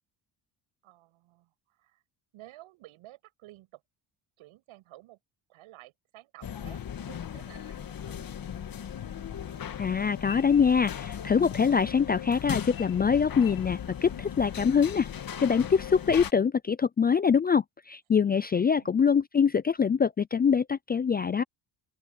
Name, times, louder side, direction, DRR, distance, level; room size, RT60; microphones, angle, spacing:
voice 1, 0.8-2.0 2.3-3.8 4.4-5.2 5.5-8.3 18.7-19.2, right 17 dB, 85° right, 6.4 m, -53 dB
sound 1, 6.4-16.3, left 9 dB, 45° left, 2.0 m, -37 dB
voice 2, 9.8-15.1 15.4-21.4, left 6 dB, 20° left, 0.4 m, -24 dB
open air
cardioid pair, 95°, 47 cm